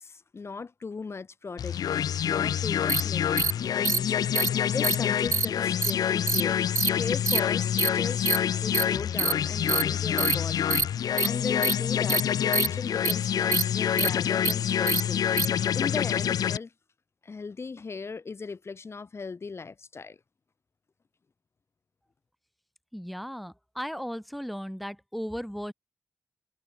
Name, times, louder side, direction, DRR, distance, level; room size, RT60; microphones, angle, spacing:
voice 1, 0.0-1.8 2.2-4.3 4.7-6.6 6.9-15.2 15.7-16.7 17.2-20.2, left 4 dB, 40° left, 1.3 m, -38 dB
sound 1, 1.6-16.6, left 9 dB, 80° left, 0.5 m, -27 dB
sound 2, 2.9-3.0 3.4-3.5 3.8-4.0 4.3-4.5 4.8-4.9 5.3-5.4 5.8-5.9 6.3-6.4 6.7-6.9 7.3-7.4 7.8-7.9 8.2-8.4 8.7-8.8 9.2-9.3 9.7-9.8 10.2-10.3 10.7-10.8 11.2-11.3 11.6-11.7 12.1-12.2 12.5-12.7 13.0-13.1 13.5-13.6 14.0-14.1 14.4-14.5 14.9-15.0 15.4-15.5, right 6 dB, 55° right, 0.6 m, -25 dB
voice 2, 22.9-25.7, equal, ahead, 1.1 m, -36 dB
cardioid pair, 75°, 6 cm